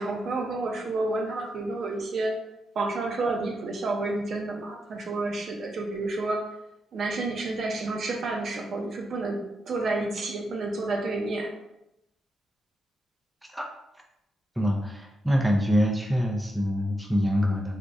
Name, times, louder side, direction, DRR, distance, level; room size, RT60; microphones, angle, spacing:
voice 1, 0.0-2.3 2.7-6.4 6.9-9.4 9.7-11.5, right 2 dB, 55° right, 1 dB, 0.6 m, -30 dB
voice 2, 14.6-17.8, equal, 5° right, 0 dB, 0.5 m, -25 dB
3.4 x 2.9 x 2.5 m, 0.87 s
cardioid pair, 90°, 0 cm